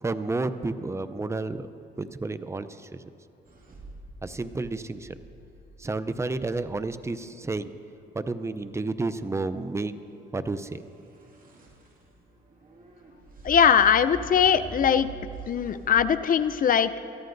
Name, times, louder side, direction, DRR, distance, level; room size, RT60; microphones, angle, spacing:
voice 1, 0.0-1.7 2.0-2.7 4.2-5.1 5.8-7.7 8.1-10.0 10.3-10.8, right 3 dB, 15° right, 12 dB, 0.5 m, -31 dB
sound 1, 3.5-7.5 10.8-16.2, right 2 dB, 45° right, 2.2 m, -45 dB
voice 2, 13.4-15.1 15.5-17.0, left 8 dB, 45° left, 12 dB, 0.5 m, -21 dB
23.5 x 14.0 x 2.6 m, 2.7 s
cardioid pair, 90°, 20 cm